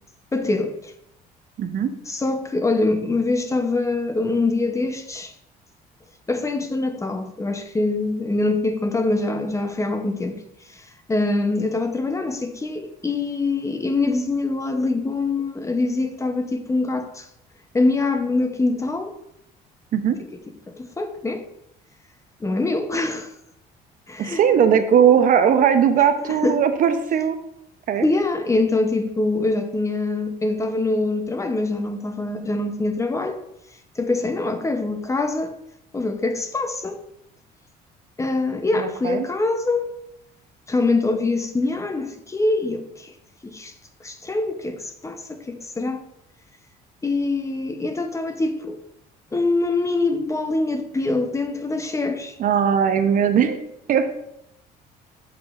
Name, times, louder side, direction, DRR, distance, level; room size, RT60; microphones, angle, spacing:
voice 1, 0.3-0.9 2.1-5.3 6.3-10.4 10.7-17.3 17.7-19.2 20.7-21.4 22.4-23.3 24.1-24.4 26.3-26.6 28.0-33.4 34.0-35.6 35.9-37.0 38.2-39.9 40.7-43.1 43.4-43.7 44.0-46.1 47.0-48.8 49.3-52.3, left 2 dB, 15° left, 0.6 m, -24 dB
voice 2, 1.6-1.9 19.9-20.2 24.2-27.4 27.9-28.1 38.8-39.3 52.4-53.6 53.9-54.1, right 8 dB, 55° right, 0.6 m, -18 dB
7.7 x 5.8 x 2.4 m
cardioid pair, 110°, 17 cm